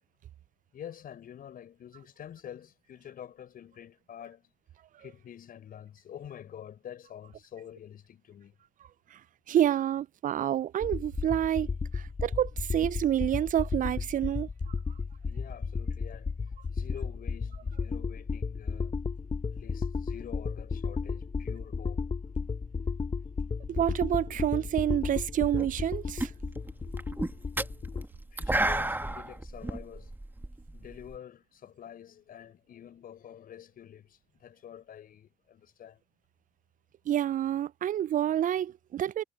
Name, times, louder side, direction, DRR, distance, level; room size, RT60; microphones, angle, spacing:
voice 1, 0.7-4.5 5.0-8.5 15.2-19.0 19.5-22.1 23.5-23.6 28.3-30.1 30.7-36.0, left 10 dB, 65° left, 6.7 m, -47 dB
voice 2, 9.5-11.7 11.9-14.5 23.7-26.3 37.1-39.2, right 11 dB, 55° right, 0.6 m, -28 dB
sound 1, 10.8-28.0, left 5 dB, 35° left, 1.2 m, -34 dB
sound 2, 25.6-25.9 26.2-31.2, right 1 dB, 10° right, 1.7 m, -32 dB
hypercardioid pair, 45°, 16 cm